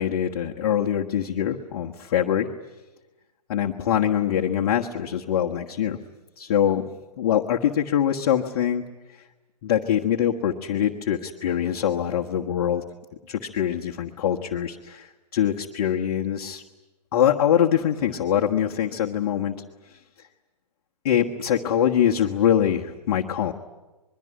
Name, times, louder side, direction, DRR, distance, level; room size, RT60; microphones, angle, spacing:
voice 1, 0.0-2.5 3.5-6.0 6.4-6.8 7.2-8.8 9.6-12.8 13.3-16.6 17.1-19.6 21.0-23.5, left 10 dB, 35° left, 0 dB, 1.4 m, -23 dB
26.0 x 22.0 x 9.9 m, 1.1 s
figure-of-eight pair, 130°, 21 cm